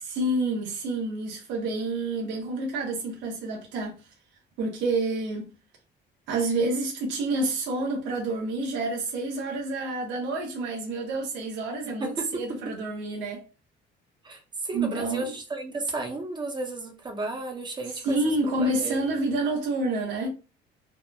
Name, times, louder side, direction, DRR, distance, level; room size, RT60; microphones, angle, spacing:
voice 1, 0.0-3.9 4.6-5.5 6.3-13.4 14.7-15.3 18.1-20.3, right 2 dB, 80° right, 0.7 m, -28 dB
voice 2, 12.0-12.4 14.2-18.3 18.6-19.0, right 2 dB, 25° right, 0.6 m, -33 dB
2.9 x 2.1 x 2.2 m
cardioid pair, 125°, 19 cm